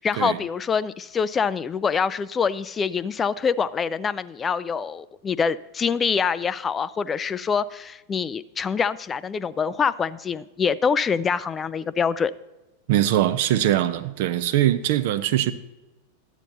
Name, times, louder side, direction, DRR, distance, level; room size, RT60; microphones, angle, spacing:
voice 1, 0.0-12.3, left 6 dB, 20° left, 0.3 m, -25 dB
voice 2, 12.9-15.5, right 12 dB, 50° right, 0.6 m, -22 dB
12.5 x 9.0 x 2.7 m
figure-of-eight pair, 90°, 0 cm